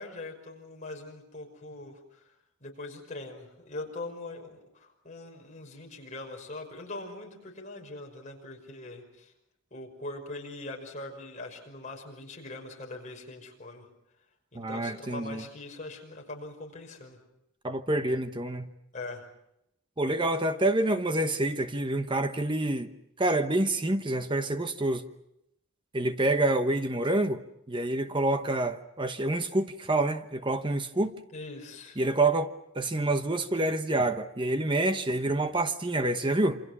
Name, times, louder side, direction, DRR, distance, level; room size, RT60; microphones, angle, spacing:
voice 1, 0.0-2.2 2.6-9.3 9.7-13.9 14.5-17.2 18.9-19.3 31.3-32.0, left 2 dB, 35° left, 5.7 m, -42 dB
voice 2, 14.5-15.4 17.6-18.7 20.0-22.9 23.2-25.0 25.9-27.4 27.7-31.1 32.0-36.6, right 2 dB, 20° right, 1.0 m, -27 dB
28.0 x 26.5 x 6.2 m
head